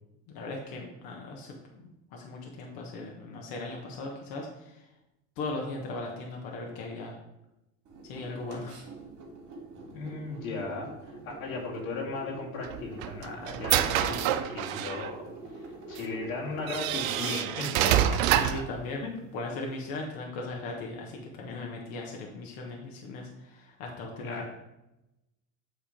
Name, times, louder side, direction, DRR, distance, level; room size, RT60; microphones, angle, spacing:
voice 1, 0.3-4.9 5.4-7.2 8.0-8.8 18.3-19.0 19.3-24.5, left 2 dB, 60° left, 0 dB, 1.4 m, -38 dB
sound 1, 7.8-18.2, right 3 dB, 45° right, 2.5 m, -45 dB
voice 2, 9.9-15.2 15.9-18.6 19.0-19.2 24.2-24.5, left 3 dB, 90° left, -2 dB, 2.1 m, -37 dB
sound 2, 12.6-15.1 16.0-16.1 16.7-18.7, right 11 dB, 85° right, 0.6 m, -27 dB
7.4 x 3.7 x 5.1 m, 0.92 s
supercardioid pair, 110°, 40 cm